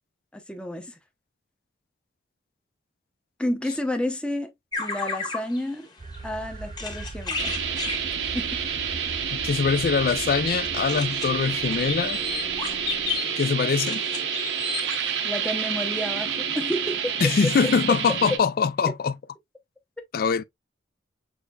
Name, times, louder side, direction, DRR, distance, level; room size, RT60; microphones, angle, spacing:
voice 1, 0.3-0.9 3.4-4.5 4.8-5.9 6.2-7.6 8.3-8.6 15.2-17.1 18.9-19.0, left 1 dB, 5° left, 0.7 m, -30 dB
sound 1, 4.7-16.4 16.9-17.0 17.2-17.7, left 4 dB, 25° left, 1.3 m, -35 dB
sound 2, 6.0-13.2, right 3 dB, 35° right, 0.5 m, -41 dB
sound 3, 7.4-18.4, right 7 dB, 80° right, 0.9 m, -29 dB
voice 2, 9.4-12.2 13.4-14.0 17.2-19.1 20.1-20.4, left 6 dB, 55° left, 0.3 m, -23 dB
6.4 x 3.3 x 2.3 m
head